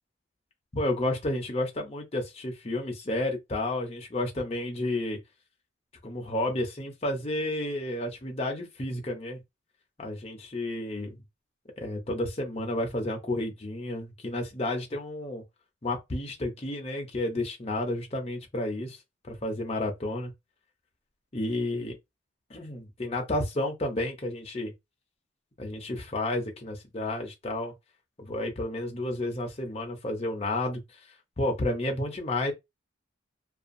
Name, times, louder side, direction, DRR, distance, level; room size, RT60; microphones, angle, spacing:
voice 1, 0.7-5.2 6.0-9.4 10.0-11.2 11.8-15.4 15.8-19.0 19.3-20.3 21.3-22.0 22.5-24.7 25.6-27.7 28.2-30.8 31.4-32.5, left 1 dB, 30° left, 0.6 m, -31 dB
2.5 x 2.4 x 2.5 m
head